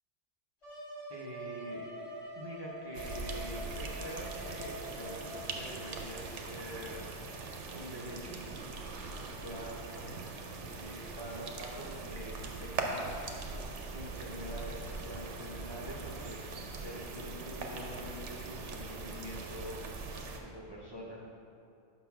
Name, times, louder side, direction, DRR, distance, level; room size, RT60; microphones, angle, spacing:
Wind instrument woodwind instrument, 0.6-6.1, right 1 dB, 75° left, 1.9 m, -45 dB
voice 1, 1.1-1.9 2.3-7.0 7.7-8.4 9.3-13.6 13.9-16.4 16.8-19.8 20.4-21.3, equal, 25° right, -5 dB, 0.6 m, -45 dB
sound 1, 2.9-20.4, right 3 dB, 80° right, 1.0 m, -41 dB
5.7 x 4.0 x 5.8 m, 2.7 s
omnidirectional pair, 1.2 m